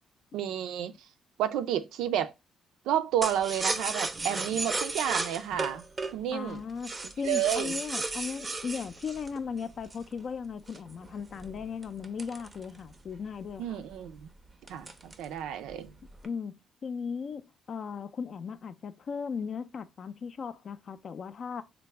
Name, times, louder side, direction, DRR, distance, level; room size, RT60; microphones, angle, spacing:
voice 1, 0.3-0.9 1.4-2.3 2.9-5.8 6.1-6.6 7.2-7.8 13.6-14.3 14.7-15.9, right 10 dB, 90° right, 0.3 m, -30 dB
sound 1, 3.2-10.1 10.7-13.1 13.5-13.6 13.9-14.2 14.7-15.4 15.7-16.3, right 3 dB, 25° right, 0.4 m, -35 dB
voice 2, 6.3-13.8 16.2-21.6, left 6 dB, 50° left, 0.3 m, -37 dB
3.3 x 2.0 x 3.2 m
cardioid pair, 90°, 0 cm